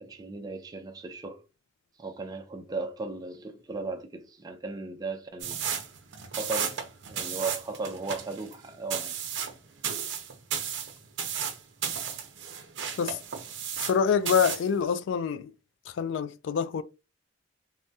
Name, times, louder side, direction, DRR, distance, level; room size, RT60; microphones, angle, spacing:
voice 1, 0.0-1.4 2.0-5.7 6.4-6.8 7.1-9.2, right 3 dB, 20° right, 0.4 m, -36 dB
sound 1, 5.4-14.0 14.2-14.7, right 7 dB, 60° right, 0.6 m, -34 dB
voice 2, 13.8-15.5 15.9-16.8, left 7 dB, 65° left, 0.3 m, -26 dB
3.5 x 2.1 x 2.6 m
head